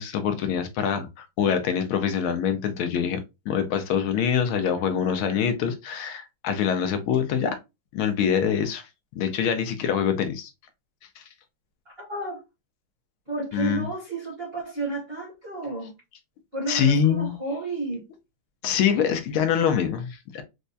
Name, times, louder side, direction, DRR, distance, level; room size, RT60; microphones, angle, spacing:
voice 1, 0.0-3.2 3.5-7.6 7.9-8.9 9.1-10.5 11.2-11.3 13.5-13.9 16.7-17.4 18.6-20.4, left 8 dB, 80° left, 1.4 m, -24 dB
voice 2, 11.9-12.4 13.3-15.9 16.5-18.0, right 2 dB, 35° right, 1.0 m, -31 dB
4.5 x 2.1 x 2.6 m
omnidirectional pair, 2.4 m